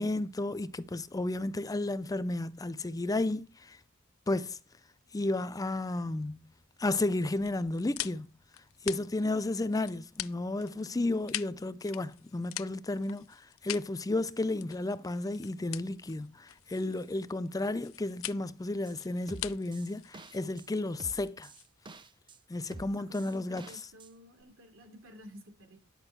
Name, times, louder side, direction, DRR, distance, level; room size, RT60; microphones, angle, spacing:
voice 1, 0.0-3.8 4.3-4.6 5.1-6.5 6.8-8.3 8.8-21.5 22.5-23.9, left 2 dB, 15° left, 0.4 m, -33 dB
sound 1, 7.4-22.1, left 15 dB, 75° left, 0.5 m, -44 dB
voice 2, 10.7-11.3 23.1-25.8, equal, 75° right, 3.4 m, -52 dB
sound 2, 18.9-19.0 19.3-20.7 21.0-22.4 22.7-24.1 24.4-24.5, right 2 dB, 25° right, 0.7 m, -48 dB
10.5 x 5.1 x 7.8 m
head